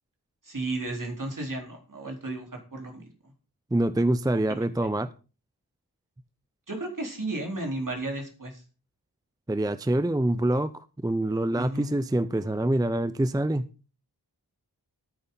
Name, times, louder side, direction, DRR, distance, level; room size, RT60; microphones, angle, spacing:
voice 1, 0.4-3.3 4.3-4.6 6.7-8.6 11.5-11.9, right 2 dB, 50° right, 1 dB, 4.0 m, -34 dB
voice 2, 3.7-5.1 9.5-13.7, right 1 dB, 10° right, 14 dB, 0.5 m, -25 dB
14.0 x 9.6 x 4.0 m, 0.35 s
wide cardioid pair, 70°, 40 cm